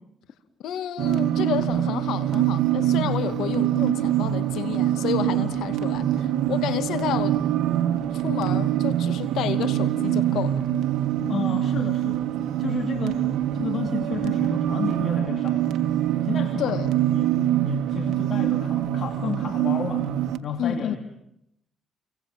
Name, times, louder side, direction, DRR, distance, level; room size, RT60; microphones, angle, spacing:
voice 1, 0.6-7.3 8.1-10.7 16.6-16.9 20.6-21.0, left 10 dB, 85° left, 11 dB, 2.4 m, -30 dB
sound 1, 1.0-20.4, right 12 dB, 85° right, 1.7 m, -24 dB
voice 2, 11.3-12.2 12.6-13.2 13.6-15.7 16.1-17.4 17.6-20.1 20.4-21.0, left 6 dB, 60° left, 6 dB, 2.7 m, -32 dB
29.5 x 24.5 x 7.4 m, 0.77 s
cardioid pair, 85°, 0 cm